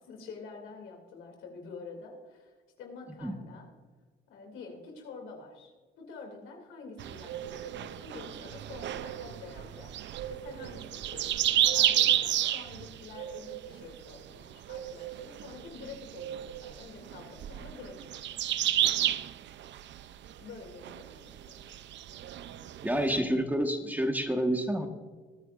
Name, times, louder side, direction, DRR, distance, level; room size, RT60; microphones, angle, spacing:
voice 1, 0.0-3.7 4.3-9.9 10.3-18.1 20.4-21.6, left 4 dB, 90° left, 2 dB, 2.7 m, -47 dB
sound 1, 7.0-23.2, right 12 dB, 65° right, 0.5 m, -32 dB
voice 2, 22.8-24.9, right 1 dB, 10° right, 4 dB, 1.4 m, -28 dB
21.0 x 9.7 x 2.5 m, 1.4 s
cardioid pair, 90°, 20 cm